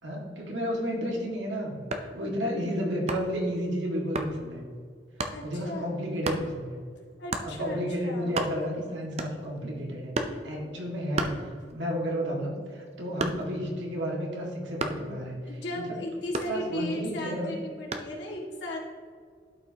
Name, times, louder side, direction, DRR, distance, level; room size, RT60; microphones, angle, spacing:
voice 1, 0.0-4.6 5.4-6.8 7.4-15.4 15.7-15.8 16.5-17.5, equal, 85° right, -2 dB, 2.0 m, -32 dB
sound 1, 1.8-2.2 3.1-3.4 4.1-4.4 5.2-5.4 6.2-6.5 7.3-7.5 8.0-8.8 9.2-9.6 10.1-10.5 11.1-11.9 12.3-13.7 14.8-15.1 16.3-17.0 17.9-18.2, right 2 dB, 35° right, 0.5 m, -32 dB
voice 2, 5.3-6.0 7.2-8.4 10.4-10.9 15.5-18.8, left 1 dB, 70° left, -3 dB, 2.0 m, -36 dB
12.0 x 5.3 x 2.9 m, 2.1 s
head